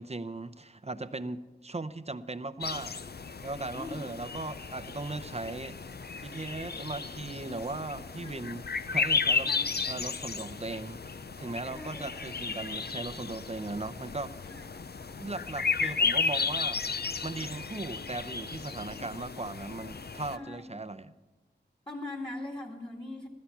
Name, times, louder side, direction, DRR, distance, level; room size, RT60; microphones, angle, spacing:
voice 1, 0.0-2.9 3.4-5.8 6.2-8.6 8.9-9.5 9.8-11.0 11.4-14.3 15.2-16.8 17.2-21.1, right 2 dB, 35° right, 12 dB, 0.7 m, -38 dB
sound 1, 2.6-20.4, left 5 dB, 60° left, 0.6 m, -34 dB
voice 2, 3.7-4.1 8.2-8.7 9.5-9.9 11.7-12.6 14.4-14.7 15.0-15.3 18.8-19.1 20.3-20.8 21.9-23.3, left 2 dB, 30° left, 1 dB, 2.3 m, -42 dB
15.5 x 13.5 x 5.8 m, 1.2 s
wide cardioid pair, 55°, 18 cm